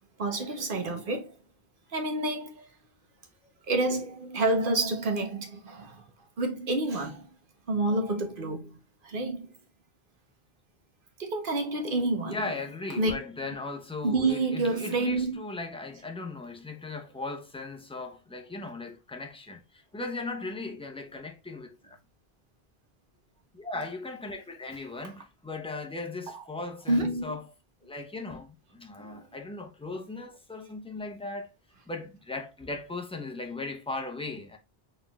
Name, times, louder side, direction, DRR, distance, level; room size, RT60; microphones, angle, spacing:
voice 1, 0.2-1.3 1.9-2.7 3.7-6.0 6.4-7.3 7.7-8.7 9.0-9.5 11.2-12.4 13.0-13.2 14.0-15.4 26.3-26.4 26.9-27.4 29.0-29.2, right 2 dB, 60° right, 1.1 m, -28 dB
voice 2, 12.2-22.0 23.5-27.4 27.8-31.5 31.9-34.6, left 3 dB, 10° left, 0.4 m, -38 dB
4.2 x 3.7 x 2.3 m
omnidirectional pair, 1.1 m